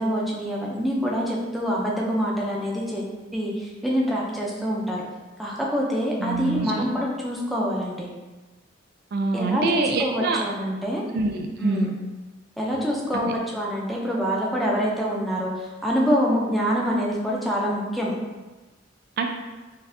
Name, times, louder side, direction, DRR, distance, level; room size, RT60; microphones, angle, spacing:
voice 1, 0.0-3.0 3.3-5.0 5.4-8.1 9.3-11.0 11.6-11.9 12.6-18.1, equal, ahead, -4 dB, 0.5 m, -25 dB
voice 2, 6.2-6.9 9.1-10.4 11.1-11.9 13.1-13.2 19.2-19.3, right 3 dB, 55° right, 3 dB, 0.3 m, -25 dB
4.0 x 2.6 x 2.7 m, 1.2 s
head